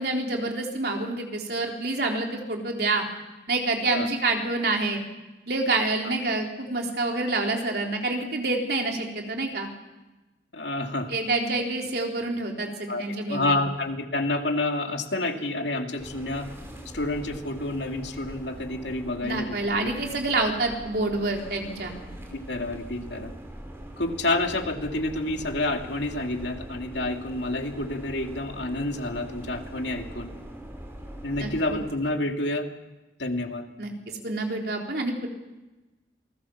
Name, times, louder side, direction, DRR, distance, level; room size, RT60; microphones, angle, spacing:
voice 1, 0.0-3.0 3.5-5.0 5.5-9.7 11.1-13.6 19.2-21.9 31.4-31.8 33.8-35.3, right 2 dB, 60° right, 1 dB, 4.0 m, -27 dB
voice 2, 10.5-11.1 12.9-16.5 16.9-19.6 22.3-23.3 24.0-30.3 31.2-32.7 33.2-33.7, left 2 dB, 80° left, 4 dB, 2.6 m, -29 dB
sound 1, 16.0-31.9, right 1 dB, 15° right, 4.1 m, -42 dB
28.0 x 20.0 x 7.3 m, 1.1 s
head